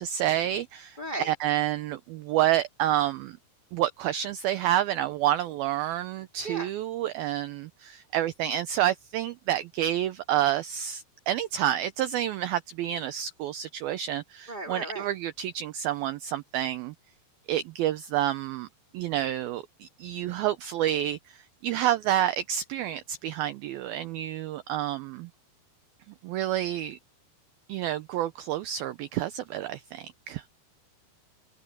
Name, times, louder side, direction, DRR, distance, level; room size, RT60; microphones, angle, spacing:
voice 1, 0.0-1.0 1.2-3.4 3.7-16.9 17.5-18.7 18.9-25.3 26.2-27.0 27.7-30.4, right 12 dB, 80° right, 2.2 m, -29 dB
voice 2, 1.0-1.3 6.4-6.7 14.5-15.1, right 2 dB, 15° left, 2.6 m, -35 dB
omnidirectional pair, 5.1 m